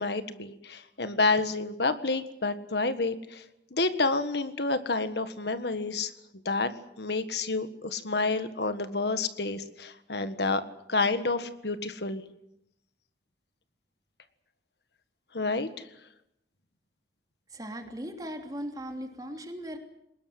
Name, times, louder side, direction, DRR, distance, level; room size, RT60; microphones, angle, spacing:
voice 1, 0.0-3.4 3.7-6.1 6.4-6.7 7.0-10.6 10.9-12.2 15.3-15.7, left 3 dB, 70° left, 10 dB, 1.6 m, -29 dB
voice 2, 17.5-19.8, equal, 20° right, 4 dB, 3.1 m, -38 dB
22.5 x 20.0 x 7.9 m, 0.80 s
head